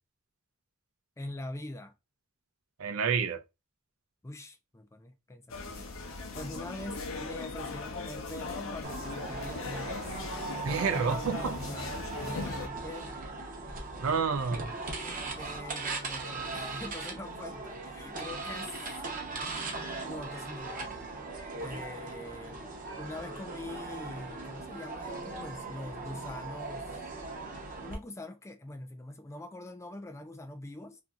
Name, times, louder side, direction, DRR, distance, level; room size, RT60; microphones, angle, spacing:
voice 1, 1.2-1.9 4.2-5.9 6.3-10.1 10.7-13.2 15.0-18.7 20.0-21.1 21.6-22.7 23.0-27.1 27.8-31.0, left 1 dB, 15° left, 0.3 m, -43 dB
voice 2, 2.8-3.4 10.6-11.6 14.0-14.7, right 5 dB, 90° right, 0.5 m, -29 dB
sound 1, 5.5-12.7, left 3 dB, 65° left, 0.6 m, -39 dB
sound 2, 8.8-27.9, right 3 dB, 40° right, 0.7 m, -39 dB
2.7 x 2.6 x 2.3 m
head